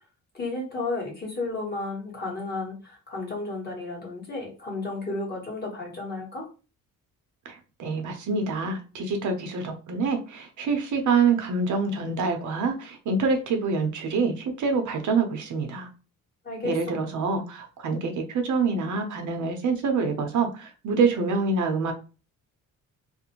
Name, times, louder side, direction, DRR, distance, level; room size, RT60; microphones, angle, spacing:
voice 1, 0.3-6.5 16.4-17.0, left 3 dB, 30° left, -3 dB, 1.1 m, -33 dB
voice 2, 7.4-15.9 16.6-21.9, right 4 dB, 65° right, 5 dB, 0.7 m, -26 dB
2.5 x 2.1 x 2.8 m, 0.33 s
wide cardioid pair, 160°, 33 cm